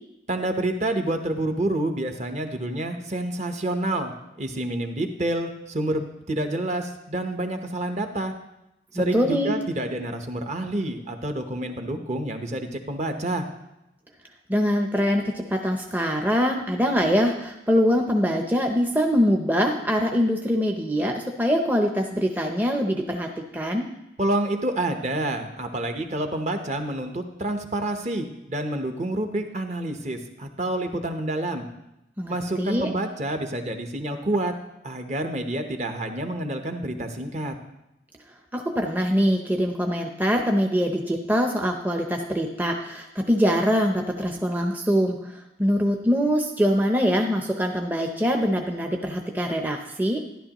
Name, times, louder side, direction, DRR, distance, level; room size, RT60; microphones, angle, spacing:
voice 1, 0.3-8.3 8.9-13.5 24.2-31.6 32.3-34.5 34.8-37.5, right 1 dB, 40° right, 6 dB, 0.9 m, -28 dB
voice 2, 8.9-9.5 14.5-23.9 32.2-32.9 38.5-50.2, equal, 10° right, 2 dB, 0.6 m, -23 dB
12.5 x 11.0 x 3.0 m, 0.90 s
head